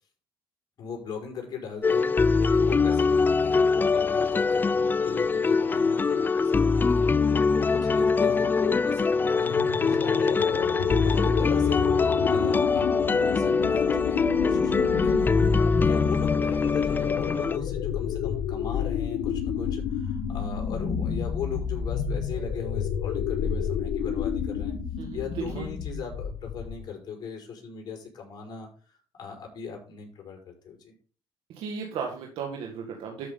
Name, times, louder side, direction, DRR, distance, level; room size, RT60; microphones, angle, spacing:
voice 1, 0.8-15.4 15.8-24.7 25.1-31.0, left 6 dB, 50° left, 0 dB, 5.3 m, -38 dB
sound 1, 1.8-17.6, left 4 dB, 20° left, 0.4 m, -23 dB
sound 2, 9.4-26.9, left 7 dB, 75° left, 1.6 m, -30 dB
voice 2, 25.0-25.6 31.5-33.3, right 6 dB, 75° right, 1 dB, 1.9 m, -35 dB
13.0 x 6.1 x 3.9 m, 0.37 s
cardioid pair, 105°, 9 cm